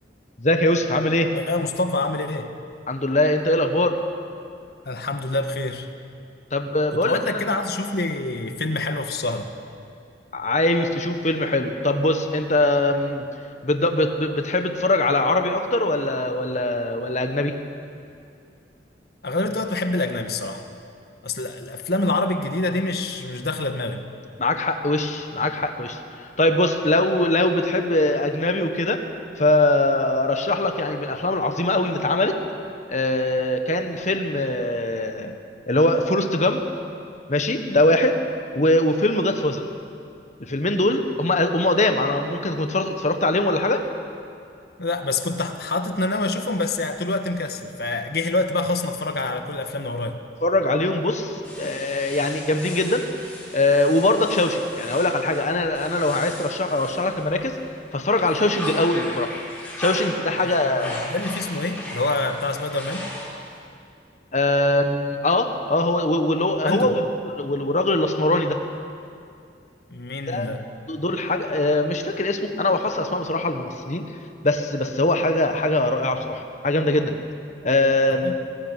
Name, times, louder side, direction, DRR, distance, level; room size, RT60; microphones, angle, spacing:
voice 1, 0.4-1.3 2.9-4.0 6.5-7.2 10.3-13.2 13.6-17.6 24.4-29.0 29.4-32.4 32.9-35.3 35.7-36.6 37.3-38.2 38.5-39.6 40.4-43.8 50.4-53.1 53.5-57.6 57.9-59.3 59.8-61.1 64.3-68.6 70.3-70.5 70.9-74.0 74.4-77.1 77.6-78.3, left 1 dB, 40° left, 6 dB, 1.5 m, -22 dB
voice 2, 1.3-2.5 4.8-5.9 6.9-9.5 19.2-20.6 21.2-24.0 44.8-50.2 60.4-63.1 66.6-66.9 69.9-70.6 78.1-78.3, left 2 dB, 60° left, 6 dB, 1.6 m, -26 dB
sound 1, 51.4-57.6 58.0-63.6, left 1 dB, 5° left, 5.9 m, -37 dB
22.0 x 16.5 x 9.2 m, 2.4 s
head